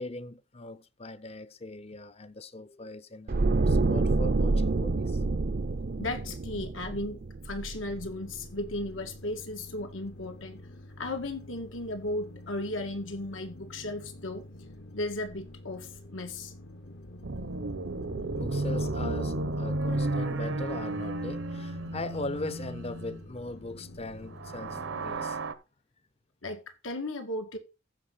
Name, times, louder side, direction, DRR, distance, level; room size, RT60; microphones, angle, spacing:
voice 1, 0.0-5.2 18.4-25.4, left 2 dB, 30° left, 0.6 m, -40 dB
sound 1, 3.3-8.4 8.6-8.9, right 3 dB, 50° right, 0.5 m, -27 dB
voice 2, 6.0-7.2 7.4-10.6 11.0-14.5 14.9-16.5 26.4-27.6, left 2 dB, 90° left, 2.0 m, -35 dB
sound 2, 7.7-25.3, left 1 dB, 60° left, 1.1 m, -48 dB
sound 3, 17.2-23.2 24.3-25.5, right 2 dB, 80° right, 1.0 m, -33 dB
15.0 x 5.6 x 4.0 m
head